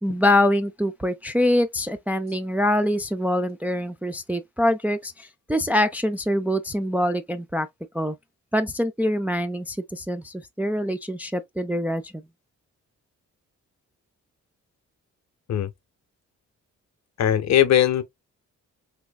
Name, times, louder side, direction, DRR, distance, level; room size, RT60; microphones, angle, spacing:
voice 1, 0.0-7.7 7.9-8.2 8.5-12.2, left 1 dB, 5° right, 0.4 m, -24 dB
voice 2, 17.2-18.0, left 11 dB, 60° left, 0.7 m, -19 dB
3.4 x 3.1 x 2.3 m
cardioid pair, 75°, 31 cm